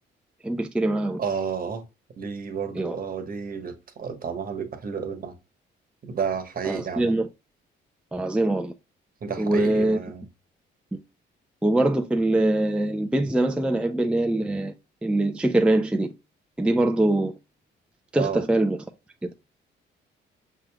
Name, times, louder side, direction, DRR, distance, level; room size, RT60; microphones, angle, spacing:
voice 1, 0.4-1.2 2.8-2.9 6.6-7.3 8.1-8.7 9.4-10.0 10.9-11.0 11.6-14.7 15.0-16.1 16.6-17.3 18.1-18.8 19.2-19.3, right 1 dB, 5° right, 0.4 m, -23 dB
voice 2, 1.2-1.8 2.2-5.3 6.0-7.1 9.2-10.3 18.2-18.4, right 6 dB, 45° right, 1.2 m, -31 dB
6.2 x 3.0 x 2.2 m
cardioid pair, 90°, 20 cm